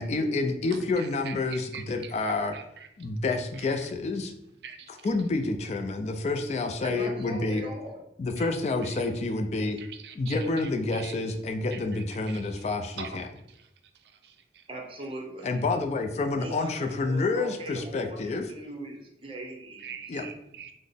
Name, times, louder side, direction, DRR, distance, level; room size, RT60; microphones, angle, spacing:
voice 1, 0.0-2.6 3.0-4.3 4.9-7.6 8.2-9.8 10.1-13.3 15.4-18.5 20.1-20.3, left 3 dB, 40° left, 6 dB, 0.3 m, -28 dB
voice 2, 0.7-2.1 2.5-2.9 3.7-3.9 4.6-4.8 8.4-8.5 8.8-9.0 9.8-11.1 11.7-12.4 13.0-13.2 19.8-20.7, right 7 dB, 65° right, 7 dB, 0.4 m, -43 dB
voice 3, 6.8-8.0 14.7-15.5 16.4-20.2, right 1 dB, 30° right, 1 dB, 0.7 m, -40 dB
3.9 x 2.0 x 3.4 m, 0.79 s
head